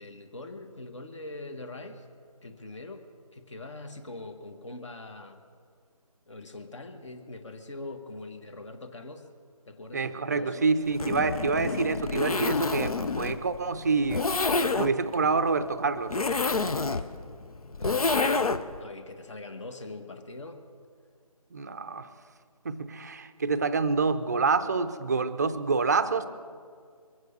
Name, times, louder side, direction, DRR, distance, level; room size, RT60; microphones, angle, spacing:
voice 1, 0.0-2.0 2.4-3.0 3.3-5.4 6.3-9.3 9.6-10.7 16.6-17.1 17.8-18.5 18.8-20.6, left 2 dB, 50° left, 6 dB, 1.3 m, -42 dB
voice 2, 9.9-14.3 14.8-16.2 21.5-22.1 22.6-26.3, right 4 dB, 30° right, 11 dB, 0.5 m, -27 dB
Zipper (clothing), 10.9-18.8, left 3 dB, 70° left, 0.8 m, -28 dB
23.0 x 8.0 x 6.7 m, 2.1 s
figure-of-eight pair, 155°, 19 cm